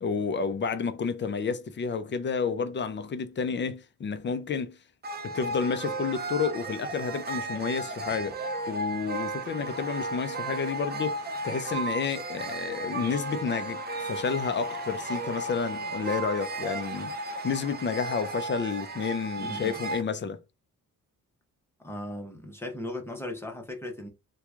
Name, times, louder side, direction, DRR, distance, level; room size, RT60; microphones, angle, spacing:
voice 1, 0.0-4.8 5.2-8.4 8.7-17.1 17.4-20.4, left 5 dB, 35° left, 0.5 m, -30 dB
sound 1, 5.0-20.0, right 2 dB, 30° right, 0.5 m, -34 dB
voice 2, 19.4-19.8 21.8-24.1, left 1 dB, 5° left, 0.9 m, -37 dB
3.0 x 2.3 x 3.6 m
wide cardioid pair, 145°, 35 cm